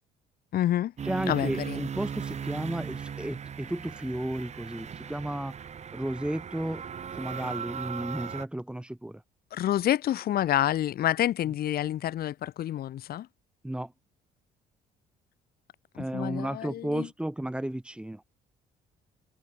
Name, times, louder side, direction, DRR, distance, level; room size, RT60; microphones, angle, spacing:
voice 1, 0.5-0.9 1.3-1.8 9.5-13.3 16.0-17.1, left 12 dB, 65° left, 6.0 m, -28 dB
voice 2, 1.0-5.5 5.9-6.8 7.1-9.2 13.6-13.9 16.0-18.2, right 1 dB, 5° right, 7.3 m, -33 dB
sound 1, 1.0-8.5, right 7 dB, 40° right, 7.8 m, -38 dB
cardioid pair, 110°, 17 cm